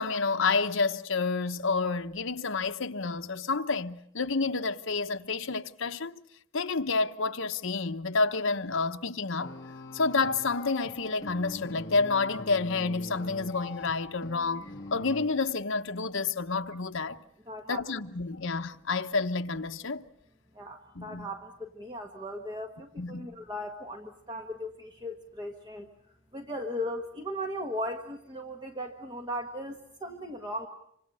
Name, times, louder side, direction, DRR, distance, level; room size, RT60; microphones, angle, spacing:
voice 1, 0.0-6.1 6.5-9.5 9.9-17.2 17.7-20.1 20.9-21.3 23.0-23.3, left 4 dB, 60° left, 1.0 m, -29 dB
sound 1, 9.4-15.3, left 2 dB, 20° left, 2.5 m, -43 dB
voice 2, 17.5-17.8 20.5-25.9 26.3-30.7, equal, 20° right, 1.4 m, -37 dB
27.0 x 25.5 x 5.5 m
head